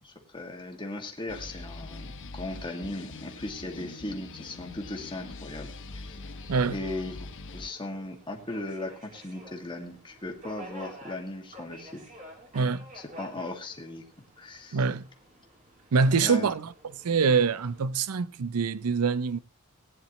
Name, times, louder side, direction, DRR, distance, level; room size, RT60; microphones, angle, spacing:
voice 1, 0.0-6.2 6.7-7.3 7.5-12.1 12.9-14.0 14.4-14.8 16.2-16.5, left 2 dB, 20° left, 2.1 m, -37 dB
sound 1, 1.3-7.7, left 3 dB, 60° left, 0.9 m, -43 dB
Subway metro underground, 4.2-17.8, right 1 dB, 35° right, 3.3 m, -51 dB
voice 2, 12.5-12.9 14.7-15.1 15.9-16.7 17.0-19.4, right 5 dB, 90° right, 0.5 m, -25 dB
18.5 x 10.0 x 3.1 m
head